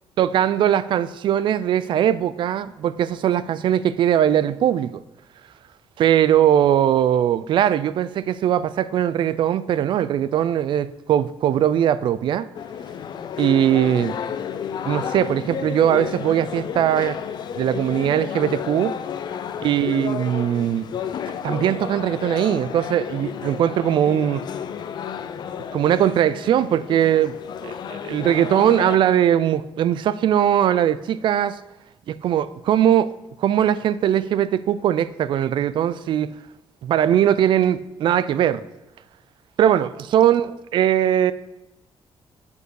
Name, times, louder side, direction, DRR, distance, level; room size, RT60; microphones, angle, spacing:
voice 1, 0.2-5.0 6.0-12.5 13.4-14.2 14.8-17.2 17.6-19.0 19.6-20.9 21.4-24.5 25.7-31.6 32.1-33.1 33.4-36.3 36.8-38.6 39.6-41.3, right 10 dB, 60° right, 0.4 m, -20 dB
sound 1, 12.5-29.0, left 8 dB, 50° left, 0.6 m, -31 dB
8.1 x 5.4 x 6.3 m
cardioid pair, 165°, 9 cm